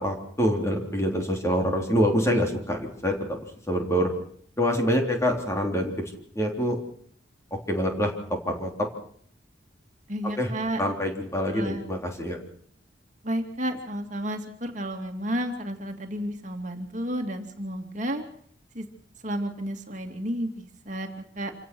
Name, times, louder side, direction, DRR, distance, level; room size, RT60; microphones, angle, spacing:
voice 1, 0.0-3.4 3.7-4.1 4.6-5.9 6.4-6.8 7.7-8.9 10.4-10.5 10.8-12.4, equal, 15° left, 2 dB, 3.6 m, -25 dB
voice 2, 10.1-10.8 11.5-11.8 13.2-18.2 18.7-18.9 19.2-21.1 21.4-21.5, equal, 45° right, 3 dB, 2.5 m, -31 dB
27.0 x 17.0 x 6.2 m, 0.63 s
head